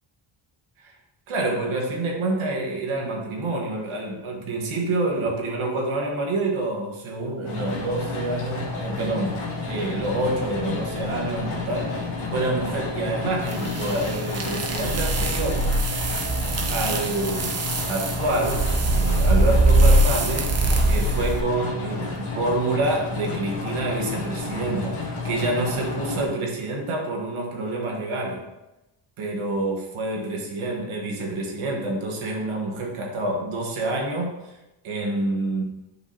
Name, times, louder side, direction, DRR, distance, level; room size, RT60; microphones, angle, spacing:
voice 1, 1.3-9.4 9.7-12.0 12.3-15.7 16.7-20.5 20.9-28.4 29.2-34.3 34.8-35.6, right 2 dB, 90° right, 0 dB, 1.6 m, -27 dB
sound 1, 7.4-26.3, left 3 dB, 80° left, 1.5 m, -31 dB
sound 2, 13.5-21.4, right 2 dB, 30° right, 0.7 m, -22 dB
8.1 x 4.9 x 2.8 m, 0.96 s
cardioid pair, 95°, 48 cm